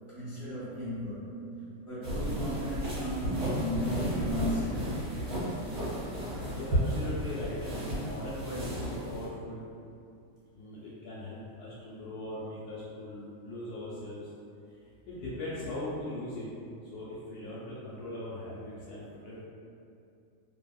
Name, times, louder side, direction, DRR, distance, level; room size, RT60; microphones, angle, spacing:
voice 1, 0.1-1.3 1.8-4.9, equal, ahead, -13 dB, 1.0 m, -35 dB
sound 1, 2.0-9.3, equal, 75° right, 1.4 m, -33 dB
voice 2, 6.5-9.6 10.5-14.3 15.1-16.5 16.9-19.4, left 1 dB, 75° left, -8 dB, 1.0 m, -40 dB
2.7 x 2.6 x 2.2 m, 2.5 s
omnidirectional pair, 1.8 m